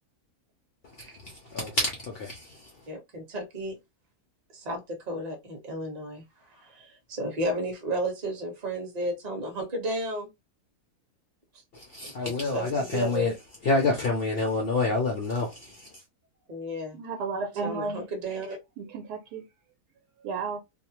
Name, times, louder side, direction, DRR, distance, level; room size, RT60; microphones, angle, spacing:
voice 1, 1.2-2.7 11.7-13.3 13.6-15.9, left 3 dB, 75° left, 0.5 m, -28 dB
voice 2, 2.9-3.8 4.5-10.3 12.0-13.3 16.5-17.0 17.6-18.6, right 1 dB, 30° right, 0.9 m, -33 dB
voice 3, 16.9-18.0 18.8-19.4 20.2-20.6, right 4 dB, 85° right, 1.2 m, -33 dB
2.7 x 2.0 x 2.8 m
omnidirectional pair, 1.7 m